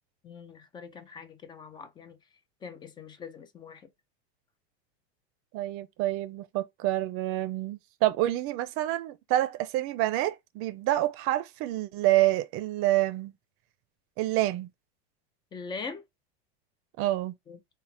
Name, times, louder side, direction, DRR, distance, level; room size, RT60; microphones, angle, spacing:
voice 1, 0.2-2.2 2.6-3.9 15.5-16.0 17.5-17.6, left 5 dB, 15° left, 0.3 m, -42 dB
voice 2, 5.5-13.3 14.2-14.7 17.0-17.3, right 15 dB, 45° right, 0.6 m, -27 dB
4.2 x 2.0 x 4.3 m
supercardioid pair, 145°, 32 cm